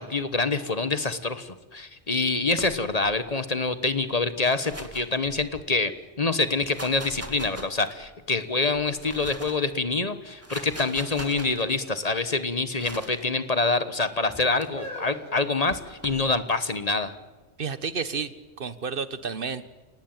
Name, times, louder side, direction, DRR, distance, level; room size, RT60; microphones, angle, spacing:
voice 1, 0.0-5.9 6.2-17.1, left 3 dB, 35° left, 12 dB, 1.3 m, -26 dB
sound 1, 2.6-3.2 4.2-5.8 6.5-8.1 8.7-9.7 10.3-11.7 12.8-13.2 14.3-14.7 15.7-16.3, right 1 dB, 10° right, 2.4 m, -41 dB
sound 2, 7.7-9.2 9.8-10.3 11.2-11.5 11.8-12.0 12.8-13.5 14.2-16.2 17.0-17.1, equal, 5° left, 6.3 m, -45 dB
voice 2, 17.6-19.7, right 5 dB, 50° right, 14 dB, 1.4 m, -31 dB
29.5 x 18.5 x 9.0 m, 1.3 s
omnidirectional pair, 1.2 m